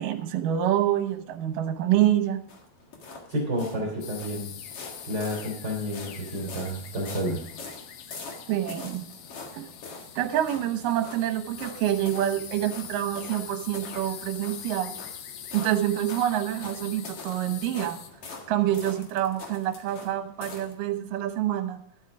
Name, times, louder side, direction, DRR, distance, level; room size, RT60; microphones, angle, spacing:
voice 1, 0.0-2.4 8.5-9.1 9.5-9.7 10.2-14.9 15.5-18.0 18.5-21.8, right 12 dB, 75° right, 8 dB, 2.6 m, -27 dB
sound 1, 1.9-20.7, left 3 dB, 50° left, 2.5 m, -44 dB
voice 2, 3.3-4.5 5.0-7.4, equal, 30° right, -1 dB, 3.4 m, -30 dB
sound 2, 4.0-18.1, left 9 dB, 90° left, 2.7 m, -43 dB
13.0 x 8.2 x 4.9 m, 0.62 s
omnidirectional pair, 3.9 m